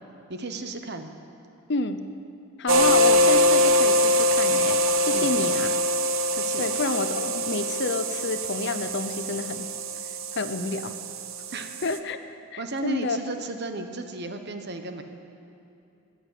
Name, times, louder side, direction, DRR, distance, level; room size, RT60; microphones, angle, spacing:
voice 1, 0.3-1.1 5.1-5.3 6.3-6.7 11.5-11.7 12.6-15.0, right 2 dB, 50° right, 7 dB, 1.1 m, -34 dB
voice 2, 1.7-2.0 2.6-5.8 6.6-9.7 10.3-11.0 11.8-12.2 12.5-13.2, left 3 dB, 55° left, 10 dB, 0.7 m, -29 dB
sound 1, 2.7-12.0, equal, 70° right, 0.8 m, -23 dB
14.0 x 10.5 x 8.3 m, 2.7 s
head